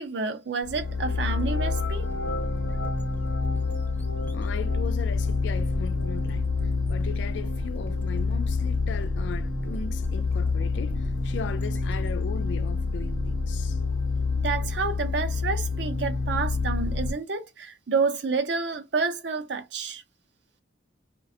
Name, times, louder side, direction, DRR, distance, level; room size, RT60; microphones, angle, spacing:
voice 1, 0.0-2.1 14.4-20.0, right 4 dB, 65° right, 0.5 m, -29 dB
sound 1, 0.6-17.1, left 3 dB, 85° left, 0.7 m, -27 dB
sound 2, 1.1-13.7, equal, 10° left, 0.5 m, -42 dB
voice 2, 4.3-6.5 6.9-13.8, left 6 dB, 70° left, 0.3 m, -38 dB
2.4 x 2.1 x 2.6 m
head